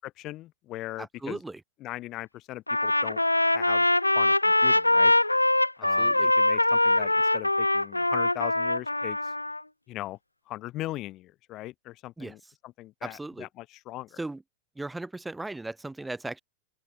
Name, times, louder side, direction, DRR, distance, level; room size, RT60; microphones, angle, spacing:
voice 1, 0.0-1.4 1.8-3.9 4.1-5.1 5.8-9.3 9.9-10.2 10.5-14.2, left 16 dB, 35° left, 0.8 m, -39 dB
voice 2, 1.0-1.6 6.0-6.3 12.2-12.3 13.0-13.5 14.2-14.4 14.8-16.4, right 2 dB, 5° right, 2.5 m, -37 dB
Trumpet, 2.7-9.6, left 2 dB, 85° left, 0.3 m, -23 dB
open air
figure-of-eight pair, 90°, 0 cm